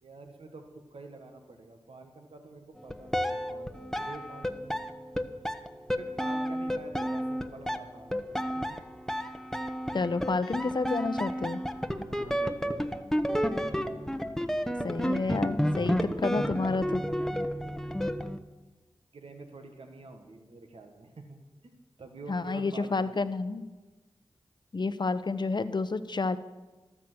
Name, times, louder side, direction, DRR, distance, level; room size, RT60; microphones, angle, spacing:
voice 1, 0.0-4.8 6.0-8.8 12.1-12.8 17.0-18.1 19.1-21.7 22.0-23.4, right 3 dB, 70° right, 5 dB, 1.6 m, -48 dB
sound 1, 2.8-18.4, equal, 5° left, 1.0 m, -31 dB
voice 2, 9.9-11.6 14.8-17.0 22.3-23.7 24.7-26.4, left 3 dB, 45° left, 12 dB, 0.9 m, -30 dB
13.5 x 13.0 x 6.3 m, 1.2 s
cardioid pair, 45°, 10 cm